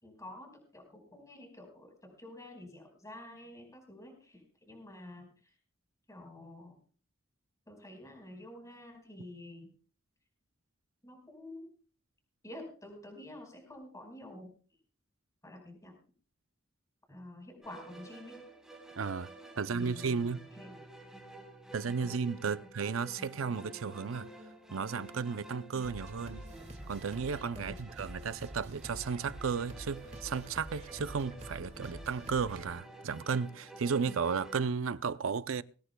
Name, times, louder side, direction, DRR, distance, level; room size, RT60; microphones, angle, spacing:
voice 1, 0.0-5.5 6.1-6.8 7.7-9.7 11.0-11.7 12.4-14.5 15.4-15.9 17.1-18.4 19.5-20.8 22.0-22.2 22.5-22.6 27.5-27.8, left 1 dB, 15° left, 4.8 m, -49 dB
sound 1, 17.6-34.6, right 1 dB, 5° right, 4.0 m, -51 dB
voice 2, 19.0-19.3 19.6-20.4 21.7-24.3 24.7-26.4 26.9-35.6, right 5 dB, 85° right, 0.6 m, -34 dB
sound 2, 25.8-32.7, right 1 dB, 35° right, 2.0 m, -47 dB
21.0 x 17.0 x 2.3 m
head